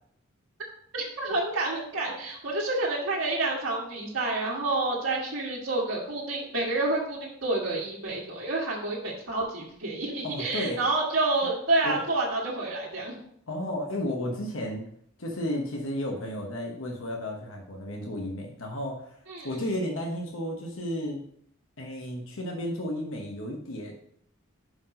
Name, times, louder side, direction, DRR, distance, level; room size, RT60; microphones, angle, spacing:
voice 1, 0.9-13.2 19.3-19.5, right 2 dB, 90° right, -6 dB, 1.7 m, -29 dB
voice 2, 10.2-10.8 11.8-12.0 13.5-14.8 15.2-19.1 19.4-21.2 21.8-23.9, left 1 dB, 80° left, 0 dB, 1.2 m, -33 dB
5.8 x 5.2 x 5.0 m, 0.67 s
head